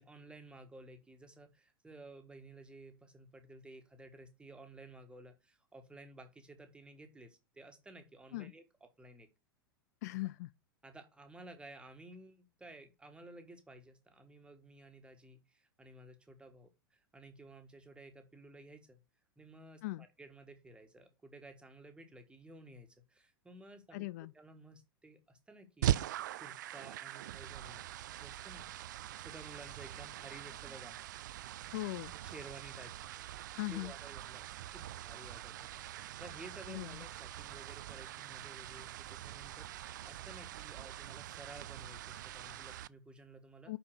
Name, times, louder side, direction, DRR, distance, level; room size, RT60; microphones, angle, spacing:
voice 1, 0.0-9.3 10.8-19.0 19.4-24.1 24.3-27.8 28.1-28.7 29.2-31.0 32.2-33.4 33.7-43.7, right 2 dB, 10° right, 1.6 m, -54 dB
voice 2, 10.0-10.5 19.8-20.1 23.9-24.3 31.7-32.1 33.6-33.9 36.7-36.9 43.7-43.8, left 20 dB, 45° left, 0.3 m, -39 dB
sound 1, 25.8-42.9, right 13 dB, 55° right, 0.4 m, -42 dB
6.1 x 5.8 x 6.4 m
figure-of-eight pair, 95°, 12 cm